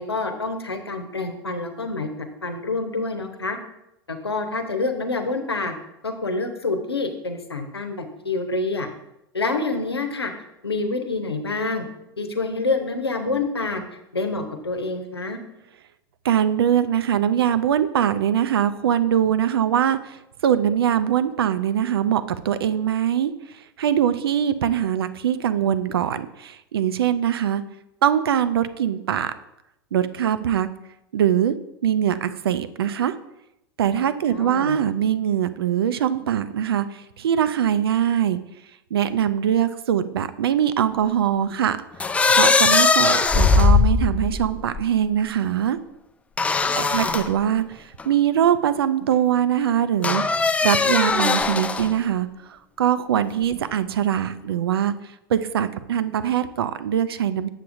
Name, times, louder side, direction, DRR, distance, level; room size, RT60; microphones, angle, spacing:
voice 1, 0.0-3.6 4.1-5.7 6.0-8.9 9.3-10.3 10.6-11.8 12.2-13.8 14.1-15.4 34.3-34.8 46.5-47.1, left 3 dB, 90° left, 5 dB, 0.8 m, -27 dB
voice 2, 16.2-23.3 23.8-27.6 28.0-29.3 29.9-30.7 31.1-31.6 31.8-33.1 33.8-38.4 38.9-41.8 42.3-45.8 46.7-54.9 55.3-57.5, right 9 dB, 70° right, 13 dB, 0.5 m, -22 dB
sound 1, 42.0-44.8 46.4-47.3 48.0-48.1 50.0-51.9, left 4 dB, 10° left, 0.3 m, -19 dB
7.4 x 6.9 x 2.6 m, 0.86 s
figure-of-eight pair, 90°, 13 cm